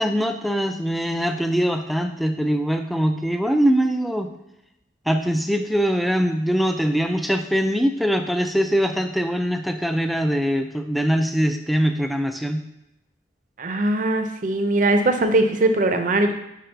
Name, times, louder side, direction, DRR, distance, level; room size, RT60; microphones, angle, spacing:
voice 1, 0.0-4.3 5.1-12.6, equal, ahead, 6 dB, 0.3 m, -22 dB
voice 2, 13.6-16.3, right 2 dB, 45° right, 7 dB, 0.6 m, -20 dB
5.2 x 4.8 x 4.5 m, 0.90 s
head